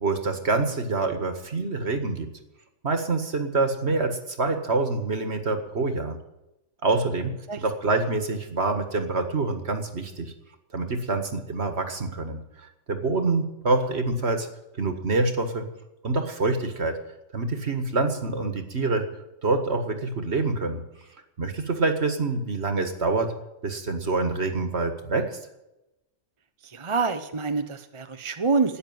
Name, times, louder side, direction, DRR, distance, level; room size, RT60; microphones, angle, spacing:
voice 1, 0.0-2.3 2.8-6.2 6.8-10.3 10.7-12.4 12.9-14.5 14.8-15.7 16.0-17.0 17.3-19.1 19.4-20.8 21.4-23.3 23.6-25.4, right 3 dB, 55° right, 7 dB, 1.9 m, -26 dB
voice 2, 26.7-28.8, right 4 dB, 30° right, 8 dB, 0.8 m, -26 dB
13.0 x 9.7 x 9.4 m, 0.92 s
omnidirectional pair, 1.3 m